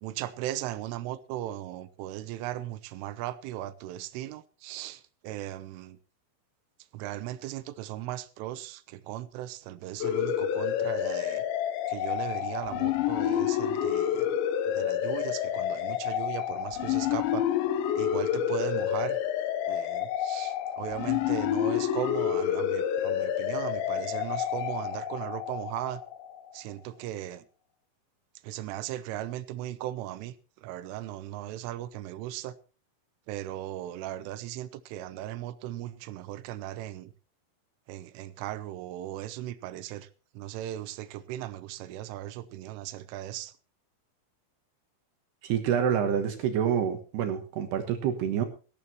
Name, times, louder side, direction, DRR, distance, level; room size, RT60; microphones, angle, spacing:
voice 1, 0.0-6.0 6.9-11.4 11.9-14.4 14.7-17.5 17.9-19.2 19.7-26.0 26.5-27.5 28.4-32.6 33.3-37.1 37.9-40.1 40.3-43.5, right 13 dB, 85° right, 3.4 m, -37 dB
sound 1, 10.0-26.4, left 10 dB, 75° left, 3.2 m, -29 dB
voice 2, 45.4-48.5, right 8 dB, 65° right, 2.9 m, -27 dB
19.0 x 14.0 x 2.9 m
omnidirectional pair, 5.7 m